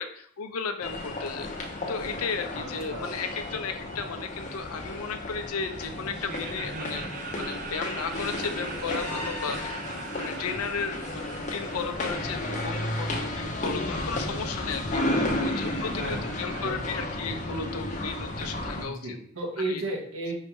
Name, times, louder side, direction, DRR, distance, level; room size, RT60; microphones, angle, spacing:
voice 1, 0.0-1.5 1.9-7.1 7.4-9.8 10.1-15.0 15.4-19.1 19.6-19.8, left 5 dB, 90° left, 7 dB, 0.6 m, -34 dB
sound 1, 0.8-18.8, left 1 dB, 35° left, 0.6 m, -33 dB
voice 2, 2.5-3.1 6.7-7.1 14.9-15.6 15.9-17.1 18.7-20.3, right 2 dB, 70° right, -1 dB, 1.3 m, -36 dB
Laughter, 6.3-13.2, right 4 dB, 40° right, 0.4 m, -41 dB
5.4 x 3.3 x 3.0 m, 0.63 s
head